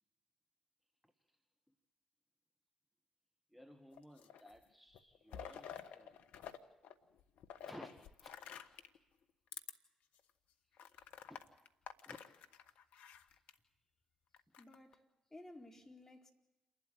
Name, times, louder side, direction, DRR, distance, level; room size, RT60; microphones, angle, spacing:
voice 1, 1.0-1.4 1.7-1.8 3.5-6.2 7.6-7.9 8.2-8.3 10.6-11.6 12.0-12.2 14.5-14.6, equal, ahead, 1.8 m, -58 dB
sound 1, 3.9-4.6 4.9-6.6 6.8-9.0 9.5-9.7 10.2-10.3 10.8-13.5 14.3-14.9, left 8 dB, 70° left, 1.2 m, -51 dB
voice 2, 14.6-16.3, left 1 dB, 15° left, 4.5 m, -56 dB
28.5 x 12.0 x 8.8 m
hypercardioid pair, 45°, 3 cm